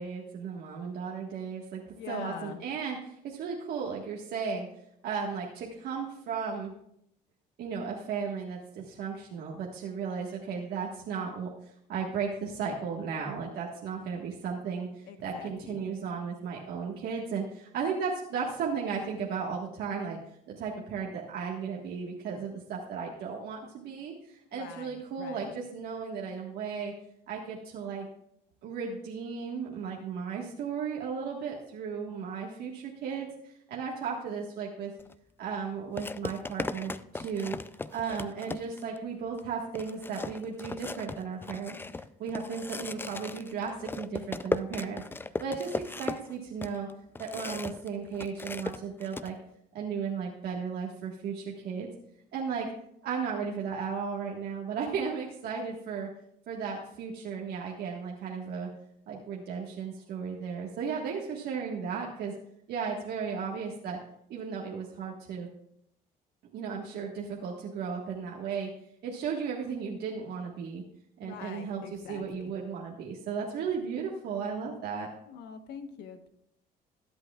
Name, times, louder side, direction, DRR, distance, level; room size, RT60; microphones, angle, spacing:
voice 1, 0.0-4.7 5.0-6.7 7.6-11.5 11.9-20.2 20.5-26.9 27.3-28.1 28.6-34.9 35.4-37.5 37.9-45.0 45.4-46.9 47.2-49.3 49.7-51.9 52.3-52.7 53.0-56.1 56.5-58.7 59.1-62.3 62.7-64.0 64.3-65.5 66.5-68.7 69.0-70.8 71.2-75.1, right 6 dB, 70° right, -2 dB, 1.6 m, -35 dB
voice 2, 2.0-2.6 15.1-15.8 24.5-25.5 71.2-72.5 75.3-76.3, left 7 dB, 90° left, 8 dB, 1.2 m, -44 dB
sound 1, 35.0-35.1 36.0-39.0 39.4-39.5 39.7-47.9 48.1-49.3, left 3 dB, 15° left, 0.4 m, -37 dB
21.5 x 8.0 x 2.4 m, 0.74 s
cardioid pair, 110°, 17 cm